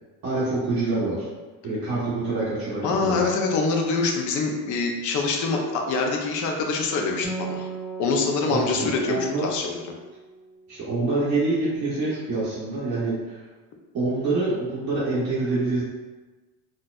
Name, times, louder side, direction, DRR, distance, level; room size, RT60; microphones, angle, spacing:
voice 1, 0.2-1.3 1.6-3.2 8.5-9.5 10.7-13.4 13.9-15.8, right 2 dB, 35° right, -11 dB, 0.9 m, -26 dB
voice 2, 2.8-7.7 8.0-9.7, left 4 dB, 45° left, 2 dB, 0.6 m, -25 dB
Acoustic guitar, 7.2-11.0, right 4 dB, ahead, 0.7 m, -37 dB
4.1 x 2.4 x 2.3 m, 1.2 s
cardioid pair, 150°, 40 cm